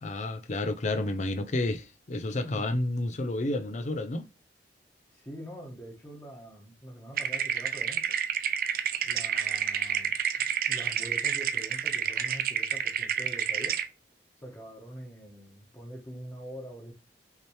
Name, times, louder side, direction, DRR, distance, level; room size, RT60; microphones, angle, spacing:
voice 1, 0.0-4.3, left 2 dB, 40° left, 0.5 m, -30 dB
voice 2, 2.4-2.7 5.1-8.1 9.0-10.2 10.7-13.8 14.4-16.9, right 1 dB, 20° left, 1.2 m, -44 dB
sound 1, 7.2-13.9, right 9 dB, 55° right, 0.4 m, -29 dB
5.7 x 3.0 x 3.1 m
head